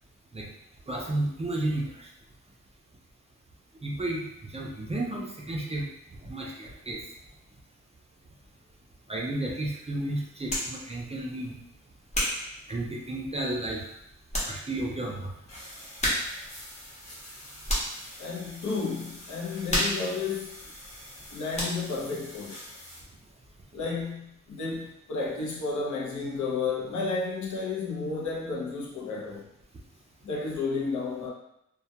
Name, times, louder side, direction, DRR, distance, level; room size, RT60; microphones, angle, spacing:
voice 1, 0.9-2.1 3.8-4.2 4.5-5.9 6.2-7.0 9.1-11.5 12.7-13.8 14.5-15.3, right 1 dB, 20° right, -2 dB, 0.3 m, -32 dB
sound 1, 10.5-10.8 11.4-13.4 13.9-14.0 14.3-14.6 14.9-15.0 16.0-16.5 16.8-18.1 18.5-18.8 19.1-21.2 21.5-22.0, equal, 25° left, 0.7 m, -31 dB
sound 2, 15.5-23.0, left 1 dB, 60° left, 1.0 m, -46 dB
voice 2, 18.2-20.6 21.3-22.6 23.7-29.5 30.2-31.3, left 4 dB, 80° left, -3 dB, 0.6 m, -32 dB
2.2 x 2.2 x 2.7 m, 0.80 s
wide cardioid pair, 130°, 30 cm